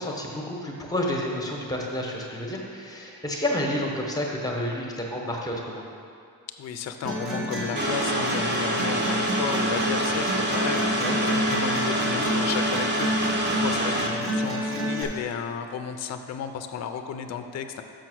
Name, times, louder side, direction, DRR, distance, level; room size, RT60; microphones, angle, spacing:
voice 1, 0.0-5.8 11.0-11.2, left 1 dB, 10° left, -1 dB, 0.8 m, -30 dB
voice 2, 6.6-17.8, left 7 dB, 45° left, 8 dB, 0.4 m, -34 dB
sound 1, 7.0-15.0, equal, 80° right, 2.1 m, -29 dB
sound 2, 7.8-14.1, right 1 dB, 30° right, 0.8 m, -27 dB
6.5 x 5.8 x 6.2 m, 2.4 s
wide cardioid pair, 180°, 36 cm